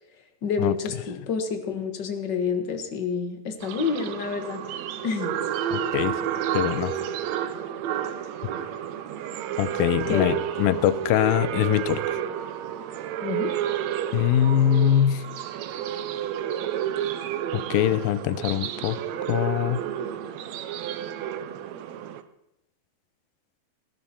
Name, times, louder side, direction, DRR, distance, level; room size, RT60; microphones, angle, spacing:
voice 1, 0.4-4.6 5.0-5.4 10.1-10.3 13.2-13.5, left 6 dB, 50° left, 6 dB, 1.4 m, -28 dB
sound 1, 3.6-22.2, right 10 dB, 75° right, 1.6 m, -31 dB
voice 2, 5.7-6.2 6.5-6.9 9.6-12.2 14.1-15.2 17.5-19.0 19.3-19.8, left 11 dB, 85° left, 15 dB, 2.5 m, -23 dB
18.5 x 16.0 x 4.3 m, 0.85 s
omnidirectional pair, 4.1 m